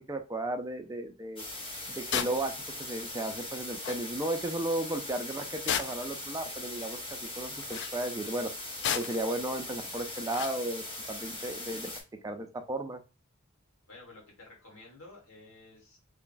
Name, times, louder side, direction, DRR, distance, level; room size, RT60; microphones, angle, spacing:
voice 1, 0.0-1.4 1.9-2.5 2.8-8.5 8.9-11.9 12.2-13.0, right 1 dB, 15° right, 6 dB, 0.4 m, -34 dB
sound 1, 1.4-12.0, left 2 dB, 25° left, 1.1 m, -40 dB
sound 2, 2.1-2.4 3.5-3.6 3.8-4.0 5.7-6.1 7.6-7.9 8.8-9.3 10.3-10.6, left 8 dB, 55° left, 0.3 m, -32 dB
voice 2, 13.9-16.0, left 2 dB, 70° left, 0 dB, 1.6 m, -52 dB
3.3 x 2.3 x 3.8 m, 0.32 s
head